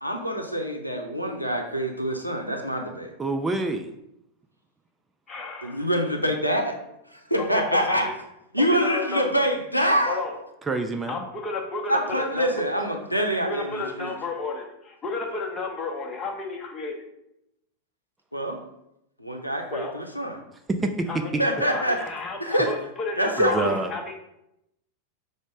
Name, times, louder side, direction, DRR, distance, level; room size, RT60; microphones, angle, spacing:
voice 1, 0.0-3.1 5.6-6.8 7.1-8.1 8.5-10.2 11.9-14.1 18.3-18.6 19.2-20.4 21.4-22.0 22.4-22.7 23.2-23.8, equal, 90° left, 2 dB, 0.5 m, -25 dB
voice 2, 3.2-3.9 10.7-11.2 20.8-21.1 23.4-24.0, right 2 dB, 15° right, 5 dB, 0.4 m, -27 dB
voice 3, 5.3-5.8 7.4-8.1 8.6-9.3 10.1-10.3 11.1-13.0 13.4-17.0 19.7-19.9 21.1-24.1, left 3 dB, 20° left, 2 dB, 0.8 m, -32 dB
5.1 x 2.1 x 4.8 m, 0.84 s
figure-of-eight pair, 90°, 0 cm